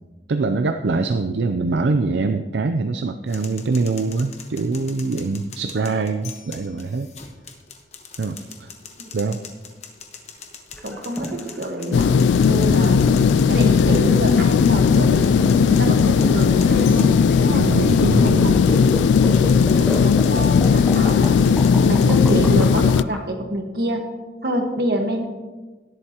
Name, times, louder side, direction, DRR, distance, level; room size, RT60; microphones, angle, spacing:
voice 1, 0.3-7.1 8.2-8.7 9.1-9.4 17.5-18.6, right 3 dB, 80° right, 7 dB, 0.5 m, -23 dB
sound 1, 3.3-22.4, left 6 dB, 40° left, 1.1 m, -42 dB
sound 2, 10.7-23.2, equal, 5° left, 0.7 m, -31 dB
voice 2, 10.8-13.0 13.5-15.2 15.6-17.7 18.0-19.1 19.7-21.4 21.9-24.1 24.4-25.3, equal, 60° right, 3 dB, 1.4 m, -27 dB
sound 3, 11.9-23.0, left 6 dB, 90° left, 0.3 m, -16 dB
18.0 x 8.0 x 2.9 m, 1.3 s
head